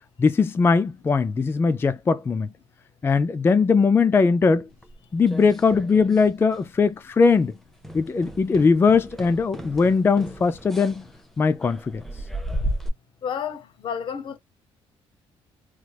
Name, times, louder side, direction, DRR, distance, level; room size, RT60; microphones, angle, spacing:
voice 1, 0.2-2.5 3.0-4.7 5.1-7.6 7.9-11.1 11.4-12.0, left 4 dB, 20° left, 0.3 m, -20 dB
sound 1, 4.8-6.3 6.5-6.9 7.2-7.4 7.8-12.9, right 1 dB, 5° left, 0.7 m, -35 dB
voice 2, 13.2-14.4, left 7 dB, 55° left, 0.7 m, -30 dB
3.3 x 3.1 x 2.3 m
cardioid pair, 105°, 10 cm